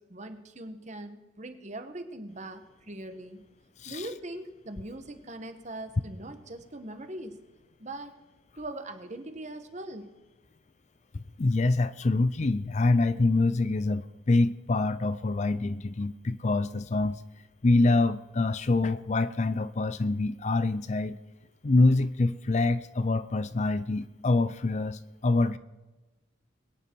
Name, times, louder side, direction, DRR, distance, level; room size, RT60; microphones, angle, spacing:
voice 1, 0.0-3.4 3.8-7.4 7.8-8.1 8.6-10.1, right 1 dB, 35° right, 8 dB, 1.3 m, -41 dB
voice 2, 11.1-17.2 17.6-21.2 21.6-25.6, left 2 dB, 35° left, 14 dB, 0.5 m, -25 dB
22.5 x 9.8 x 4.6 m, 1.2 s
head